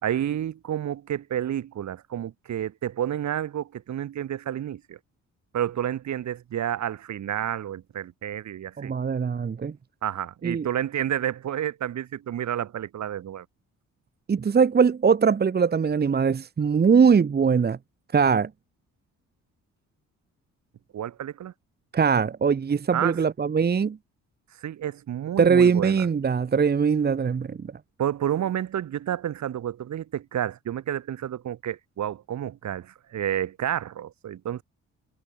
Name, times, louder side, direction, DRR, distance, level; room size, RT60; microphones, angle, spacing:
voice 1, 0.0-5.0 5.5-8.9 10.0-13.4 20.9-21.5 22.9-23.2 24.6-26.1 28.0-34.6, right 10 dB, 65° right, 5.0 m, -30 dB
voice 2, 8.8-9.8 10.4-10.7 14.3-17.8 18.1-18.5 21.9-24.0 25.4-27.7, right 6 dB, 35° right, 1.2 m, -21 dB
cardioid pair, 90°, 30 cm